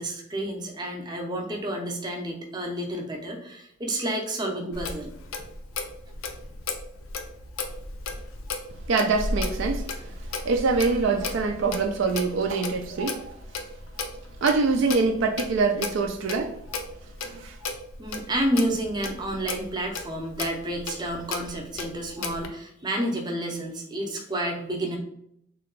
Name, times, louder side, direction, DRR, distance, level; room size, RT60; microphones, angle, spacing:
voice 1, 0.0-5.1 18.0-25.0, right 1 dB, 20° right, 0 dB, 0.6 m, -30 dB
Clock, 4.7-22.5, left 3 dB, 85° left, 0.5 m, -35 dB
voice 2, 8.9-13.4 14.4-16.6 17.2-17.6, right 4 dB, 65° right, 4 dB, 0.4 m, -25 dB
3.7 x 2.2 x 3.7 m, 0.73 s
head